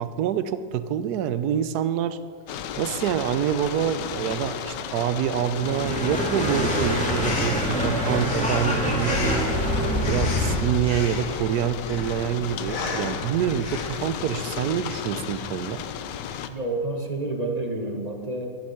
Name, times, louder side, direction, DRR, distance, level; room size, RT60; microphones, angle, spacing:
voice 1, 0.0-2.2 2.8-9.5 10.1-15.8, right 9 dB, 70° right, 13 dB, 1.1 m, -26 dB
sound 1, 2.5-16.5, left 9 dB, 85° left, 1.3 m, -34 dB
sound 2, 5.5-10.7, equal, 5° left, 2.1 m, -25 dB
Breathing, 6.5-14.1, left 4 dB, 55° left, 1.6 m, -35 dB
voice 2, 16.5-18.5, right 2 dB, 25° right, 2 dB, 1.3 m, -29 dB
11.5 x 11.5 x 5.8 m, 2.4 s
omnidirectional pair, 1.8 m